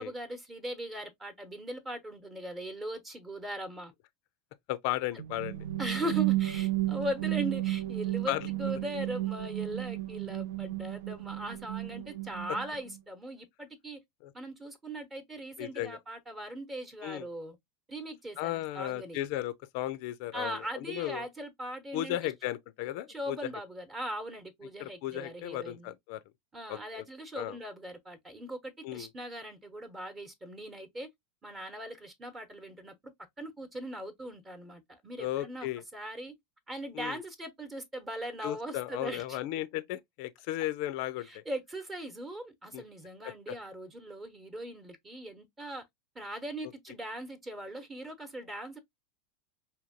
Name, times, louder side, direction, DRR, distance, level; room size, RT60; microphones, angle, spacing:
voice 1, 0.0-3.9 5.8-14.0 14.3-17.6 17.9-19.2 20.3-22.3 23.1-25.9 26.5-31.1 31.4-33.1 33.4-35.7 35.9-36.3 36.7-39.4 41.2-45.8 46.1-48.8, right 1 dB, 20° right, 1.0 m, -40 dB
voice 2, 4.7-5.6 8.3-8.5 14.2-14.3 15.6-16.0 17.0-17.3 18.4-21.3 21.9-23.4 24.8-26.2 26.7-27.0 27.3-27.6 28.8-29.1 35.2-35.8 36.9-37.2 38.4-41.4 42.7-42.8 43.2-43.6, left 14 dB, 50° left, 0.4 m, -35 dB
sound 1, 5.2-13.0, right 16 dB, 60° right, 0.4 m, -33 dB
4.9 x 2.8 x 2.5 m
figure-of-eight pair, 85°, 0 cm